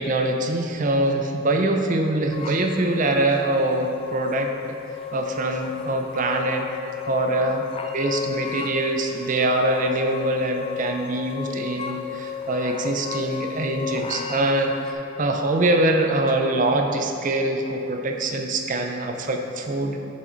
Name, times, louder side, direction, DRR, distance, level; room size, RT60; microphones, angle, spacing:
voice 1, 0.0-4.8 5.1-6.7 7.1-7.6 7.9-20.0, right 2 dB, 45° right, 3 dB, 0.5 m, -24 dB
sound 1, 2.3-14.9, left 7 dB, 30° left, 0.4 m, -34 dB
7.1 x 4.9 x 3.9 m, 2.6 s
head